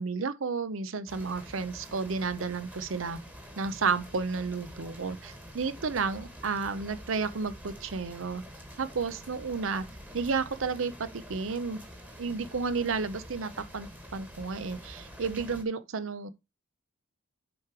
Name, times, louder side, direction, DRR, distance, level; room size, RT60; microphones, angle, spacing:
voice 1, 0.0-3.2 3.6-8.4 8.8-9.9 10.1-11.8 12.2-16.3, right 4 dB, 70° right, 0.7 m, -32 dB
Rain Shower, 1.1-15.6, equal, 10° right, 1.5 m, -47 dB
7.2 x 4.8 x 4.5 m
head